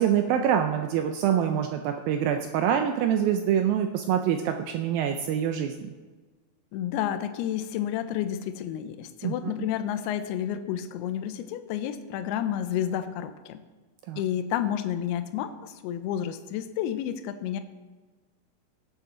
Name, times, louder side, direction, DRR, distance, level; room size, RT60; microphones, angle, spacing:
voice 1, 0.0-5.8 9.2-9.3 14.1-14.2, right 9 dB, 85° right, 6 dB, 2.1 m, -25 dB
voice 2, 6.7-13.6 14.2-17.6, left 10 dB, 80° left, 10 dB, 2.6 m, -30 dB
17.5 x 8.4 x 3.8 m, 1.3 s
omnidirectional pair, 4.7 m